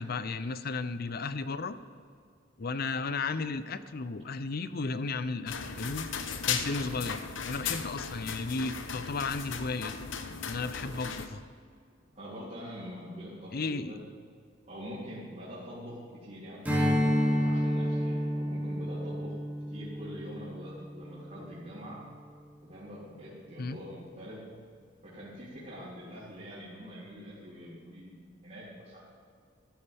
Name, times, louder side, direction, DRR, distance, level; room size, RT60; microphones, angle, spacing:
voice 1, 0.0-1.8 2.6-6.1 6.5-7.2 7.5-9.9 10.5-11.4 13.5-13.9 23.6-23.8, left 3 dB, 55° left, 12 dB, 0.6 m, -34 dB
sound 1, 5.5-11.3, left 6 dB, 80° left, 0.9 m, -36 dB
voice 2, 6.7-7.0 10.8-10.9 12.1-14.0 14.6-19.3 19.7-22.0 22.6-24.5 25.0-28.2 28.4-29.0, equal, 40° right, -11 dB, 3.2 m, -44 dB
Strum, 16.6-21.4, equal, 10° right, 2.5 m, -30 dB
14.0 x 12.5 x 3.5 m, 2.2 s
head